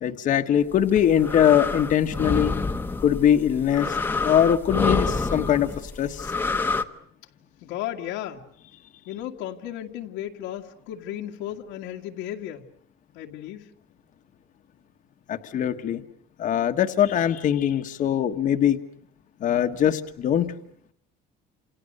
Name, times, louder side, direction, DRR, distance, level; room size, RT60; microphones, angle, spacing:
voice 1, 0.0-2.5 3.0-4.0 4.2-5.7 6.0-6.3 15.3-16.0 16.4-18.8 19.4-20.5, left 9 dB, 40° left, 1.3 m, -22 dB
sound 1, 0.8-6.8, left 3 dB, 10° left, 1.1 m, -27 dB
voice 2, 7.6-8.5 9.1-12.7 13.1-13.7, left 12 dB, 85° left, 2.1 m, -34 dB
28.5 x 28.0 x 6.6 m
cardioid pair, 155°, 20 cm